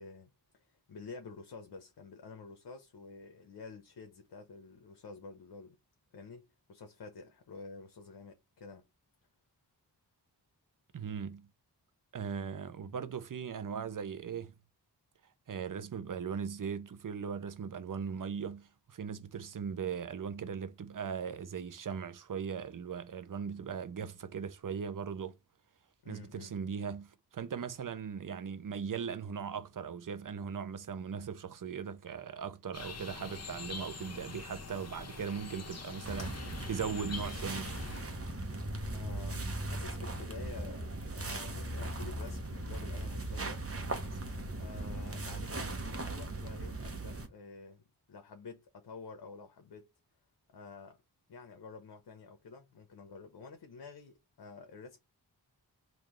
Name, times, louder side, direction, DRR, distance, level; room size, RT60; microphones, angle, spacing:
voice 1, 0.0-5.8 6.1-8.9 26.0-26.5 38.8-43.7 44.6-47.8 48.1-49.9 50.5-51.0 51.3-55.0, left 4 dB, 65° left, 0.8 m, -50 dB
voice 2, 10.9-11.5 12.1-14.5 15.5-25.4 26.1-37.7 44.1-44.3, right 6 dB, 50° right, 0.7 m, -39 dB
sound 1, 32.7-38.0, left 4 dB, 40° left, 1.0 m, -45 dB
sound 2, 36.0-47.3, right 2 dB, 35° right, 1.1 m, -38 dB
3.8 x 2.7 x 3.0 m
cardioid pair, 45°, 41 cm